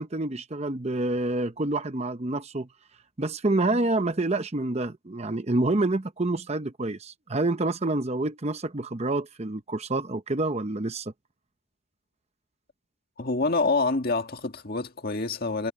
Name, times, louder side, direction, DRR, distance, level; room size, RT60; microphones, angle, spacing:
voice 1, 0.0-2.7 3.2-11.1, right 2 dB, 30° right, 0.8 m, -27 dB
voice 2, 13.2-15.7, left 3 dB, 45° left, 1.9 m, -26 dB
head